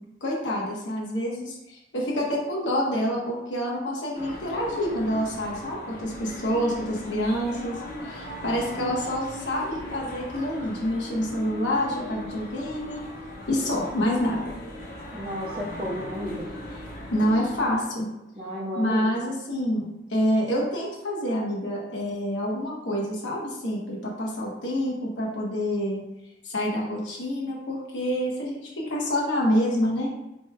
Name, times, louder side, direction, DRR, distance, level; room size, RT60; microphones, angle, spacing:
voice 1, 0.2-7.8 8.0-13.0 13.5-14.5 17.1-18.1 18.7-26.0 26.4-30.1, equal, 85° left, -4 dB, 1.1 m, -27 dB
sound 1, 4.1-17.9, equal, 50° left, 0.9 m, -39 dB
voice 2, 15.1-16.5 18.4-19.0, equal, 30° right, -7 dB, 0.6 m, -32 dB
4.4 x 3.1 x 2.2 m, 0.90 s
head